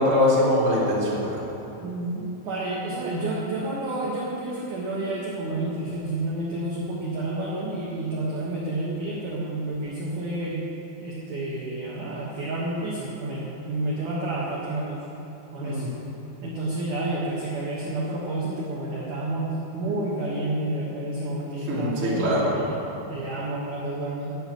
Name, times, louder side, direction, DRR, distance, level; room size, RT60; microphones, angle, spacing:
voice 1, 0.0-1.4 15.6-15.9 21.7-22.5, left 1 dB, 20° right, -7 dB, 2.2 m, -22 dB
voice 2, 1.8-10.6 11.0-15.1 15.5-15.9 16.4-22.8 23.1-24.3, right 2 dB, 60° right, -5 dB, 2.2 m, -30 dB
10.5 x 7.9 x 8.1 m, 3.0 s
omnidirectional pair, 5.4 m